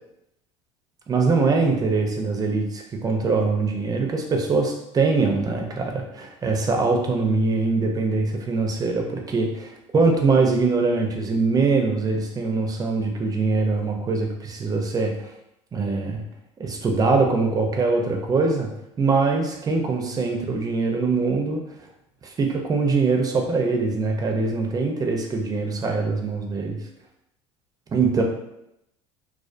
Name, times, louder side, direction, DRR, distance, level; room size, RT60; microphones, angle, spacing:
voice 1, 1.1-15.1 15.7-16.3 16.6-18.7 19.0-21.6 22.2-26.8 27.9-28.2, right 4 dB, 25° right, 2 dB, 0.5 m, -23 dB
2.4 x 2.3 x 2.5 m, 0.83 s
supercardioid pair, 95°, 14 cm